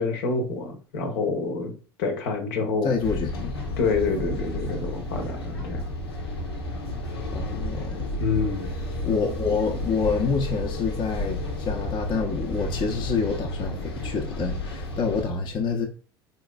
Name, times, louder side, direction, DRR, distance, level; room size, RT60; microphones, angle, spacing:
voice 1, 0.0-1.7 2.0-2.9 3.8-5.8 8.2-8.7, left 4 dB, 65° left, 0.9 m, -27 dB
voice 2, 2.8-3.5 7.3-8.1 9.0-15.9, left 5 dB, 35° left, 0.7 m, -27 dB
sound 1, 3.0-15.2, left 1 dB, 90° left, 0.8 m, -32 dB
3.9 x 2.9 x 2.2 m
hypercardioid pair, 75°, 13 cm